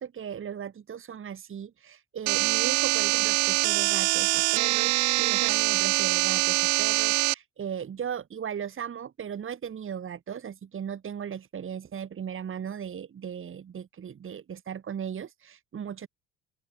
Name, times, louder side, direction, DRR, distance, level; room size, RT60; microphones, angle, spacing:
voice 1, 0.0-16.1, right 8 dB, 30° right, 2.7 m, -37 dB
sound 1, 2.3-7.3, right 26 dB, 60° right, 0.6 m, -24 dB
open air
figure-of-eight pair, 60°, 39 cm